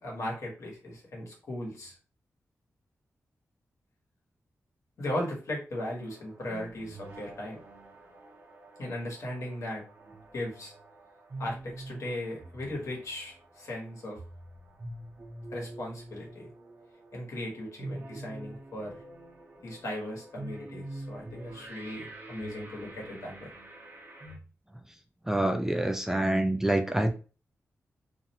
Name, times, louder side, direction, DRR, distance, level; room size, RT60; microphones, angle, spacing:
voice 1, 0.0-1.9 5.0-7.6 8.8-9.8 10.3-10.7 11.4-14.2 15.5-16.5 17.1-19.0 19.6-23.5, left 1 dB, 70° left, -2 dB, 1.1 m, -37 dB
sound 1, 6.0-24.4, right 2 dB, 45° right, 0.8 m, -46 dB
voice 2, 25.3-27.1, right 1 dB, 10° right, 4 dB, 0.3 m, -26 dB
2.5 x 2.1 x 2.7 m, 0.35 s
wide cardioid pair, 85°, 5 cm